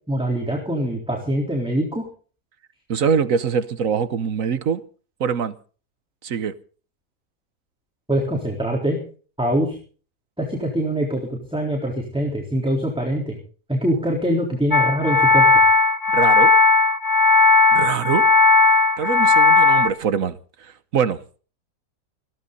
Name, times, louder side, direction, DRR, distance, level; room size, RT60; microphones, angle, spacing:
voice 1, 0.1-2.0 8.1-9.0 9.4-9.8 10.4-13.4 13.7-15.5, right 1 dB, 5° right, 3.8 m, -23 dB
voice 2, 2.9-4.8 5.2-5.5 6.2-6.5 16.1-16.5 17.7-18.3 19.0-21.2, right 6 dB, 55° right, 1.3 m, -23 dB
sound 1, 14.7-19.9, left 3 dB, 15° left, 0.8 m, -15 dB
21.0 x 16.0 x 4.0 m
omnidirectional pair, 1.8 m